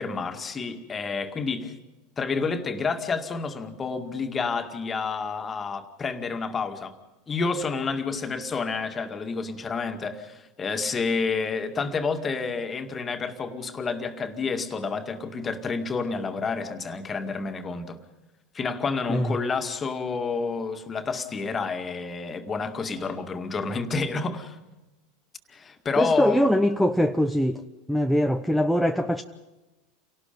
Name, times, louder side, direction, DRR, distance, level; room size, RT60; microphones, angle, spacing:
voice 1, 0.0-1.8 2.2-6.9 7.3-18.0 18.5-24.6 25.5-26.5, left 4 dB, 25° left, 2.2 m, -29 dB
voice 2, 25.9-27.6 27.9-29.2, equal, ahead, 0.9 m, -22 dB
28.5 x 18.5 x 5.3 m
hypercardioid pair, 85°, 0 cm